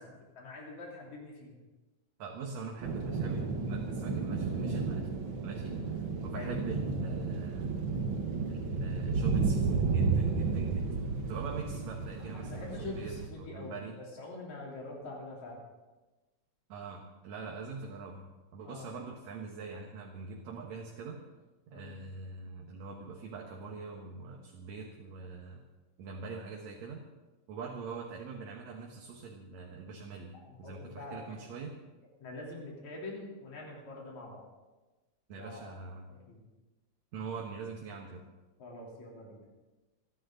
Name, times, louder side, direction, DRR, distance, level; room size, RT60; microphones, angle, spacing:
voice 1, 0.0-1.6 6.3-6.6 12.3-15.6 18.6-18.9 21.7-21.9 30.4-31.4 32.2-34.5 35.4-35.7 36.3-36.4 38.6-39.4, left 2 dB, 75° left, -3 dB, 4.7 m, -44 dB
voice 2, 2.2-5.1 5.4-7.8 8.5-10.9 11.3-14.0 16.7-21.2 21.7-25.6 26.0-27.0 27.5-30.3 30.6-31.7 35.3-36.1 37.1-38.2, right 4 dB, 70° right, 0 dB, 2.6 m, -43 dB
sound 1, 2.8-13.3, right 4 dB, 50° right, 1.8 m, -32 dB
27.0 x 11.0 x 3.9 m, 1.1 s
omnidirectional pair, 3.3 m